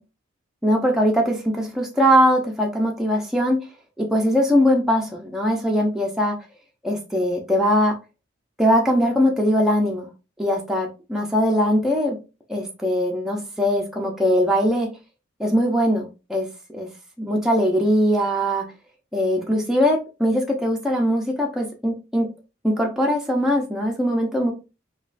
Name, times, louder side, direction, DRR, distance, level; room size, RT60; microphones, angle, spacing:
voice 1, 0.6-3.6 4.0-6.4 6.8-8.0 8.6-10.1 10.4-12.2 12.5-14.9 15.4-16.5 16.7-16.9 17.2-18.6 19.1-22.3 22.6-24.5, equal, 5° right, 0 dB, 0.5 m, -21 dB
5.2 x 2.3 x 2.5 m, 0.30 s
head